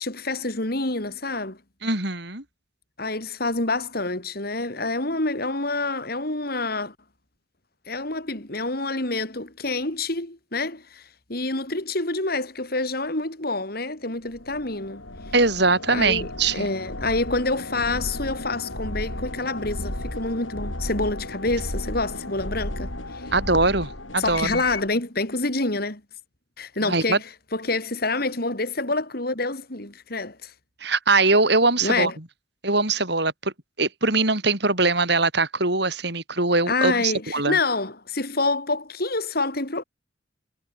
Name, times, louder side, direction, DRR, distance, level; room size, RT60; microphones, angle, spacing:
voice 1, 0.0-1.6 3.0-6.9 7.9-15.0 15.9-23.2 24.2-26.0 26.6-27.2 27.5-30.5 31.8-32.1 36.7-39.8, left 2 dB, 50° left, 3.7 m, -27 dB
voice 2, 1.8-2.4 15.3-16.7 23.3-24.6 26.8-27.2 30.8-32.1 32.6-33.5 33.8-37.6, right 3 dB, 60° right, 5.7 m, -22 dB
sound 1, 14.3-24.9, left 1 dB, 85° left, 6.8 m, -34 dB
head